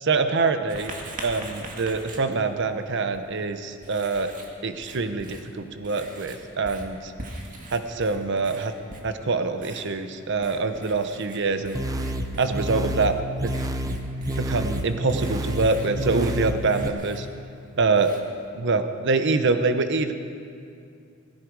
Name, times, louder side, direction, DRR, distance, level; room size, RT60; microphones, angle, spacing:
voice 1, 0.0-0.9 1.2-4.3 4.6-7.1 7.7-8.7 9.0-11.8 12.4-13.2 13.4-13.5 14.4-17.3 17.8-18.1 18.5-20.1, right 3 dB, 60° right, 9 dB, 0.8 m, -25 dB
Writing, 0.7-18.5, right 2 dB, 40° right, 1.9 m, -43 dB
sound 1, 11.7-16.9, equal, 15° right, 0.6 m, -29 dB
18.0 x 16.0 x 4.7 m, 2.5 s
head